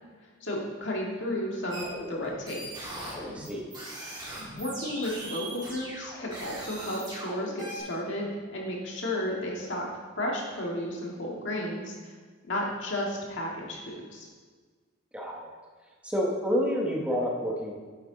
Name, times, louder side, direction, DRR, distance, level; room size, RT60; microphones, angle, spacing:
voice 1, 0.4-2.6 4.5-9.9 10.2-12.1 12.4-14.3, left 1 dB, 65° left, -2 dB, 2.0 m, -33 dB
sound 1, 1.7-7.8, right 1 dB, 20° right, 2.8 m, -39 dB
voice 2, 3.1-3.6 15.1-15.4 16.0-17.7, equal, 5° right, -2 dB, 1.0 m, -29 dB
8.9 x 8.8 x 3.9 m, 1.5 s
head